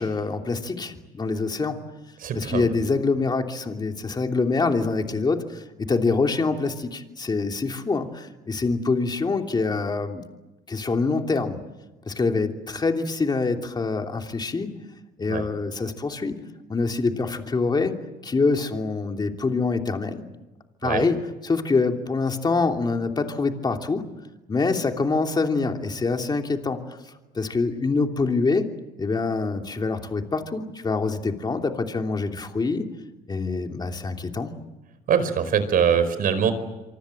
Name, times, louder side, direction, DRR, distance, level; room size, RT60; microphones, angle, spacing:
voice 1, 0.0-1.8 2.3-10.2 10.7-11.6 12.1-14.7 15.2-16.4 16.7-18.0 18.2-20.2 20.8-24.0 24.5-27.0 27.3-28.7 29.0-32.9 33.3-34.5, left 4 dB, 25° left, 4 dB, 3.0 m, -25 dB
voice 2, 2.2-2.7 15.3-15.4 20.8-21.1 35.1-36.5, right 7 dB, 55° right, 11 dB, 4.9 m, -23 dB
26.5 x 25.0 x 7.9 m, 1.1 s
cardioid pair, 110°, 17 cm